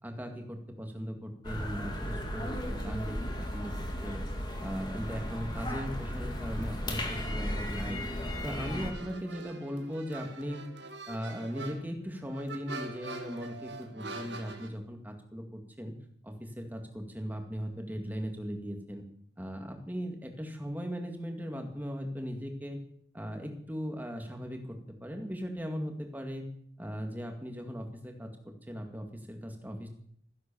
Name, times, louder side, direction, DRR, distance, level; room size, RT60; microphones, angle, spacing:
voice 1, 0.0-3.7 4.0-4.2 4.6-8.0 8.4-10.6 11.1-15.9 16.2-19.0 19.4-22.8 23.1-26.5 26.8-29.9, equal, 10° right, 3 dB, 2.2 m, -38 dB
sound 1, 1.4-8.9, equal, 25° left, 2.3 m, -35 dB
sound 2, 8.5-14.7, right 3 dB, 70° right, 2.1 m, -44 dB
15.5 x 10.5 x 7.1 m, 0.66 s
head